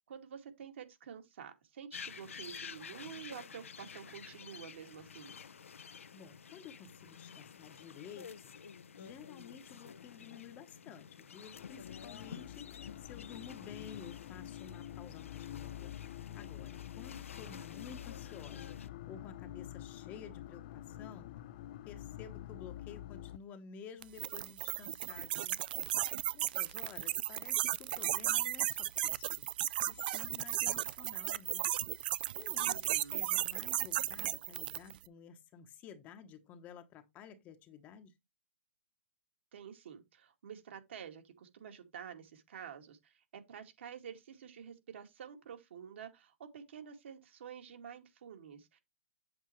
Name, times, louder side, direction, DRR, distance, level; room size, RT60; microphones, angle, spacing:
voice 1, 0.1-5.4 32.6-33.2 39.5-48.8, right 8 dB, 60° right, 2.3 m, -49 dB
sound 1, 1.9-18.9, left 7 dB, 90° left, 0.9 m, -51 dB
voice 2, 5.9-8.5 9.0-16.0 16.3-21.3 21.8-25.6 26.1-29.3 29.9-31.7 32.3-38.1, left 7 dB, 20° left, 1.0 m, -52 dB
sound 2, 11.5-23.4, left 13 dB, 40° left, 0.5 m, -47 dB
sound 3, 24.0-35.0, right 13 dB, 45° right, 0.5 m, -35 dB
8.2 x 7.8 x 3.1 m
hypercardioid pair, 155°, 7 cm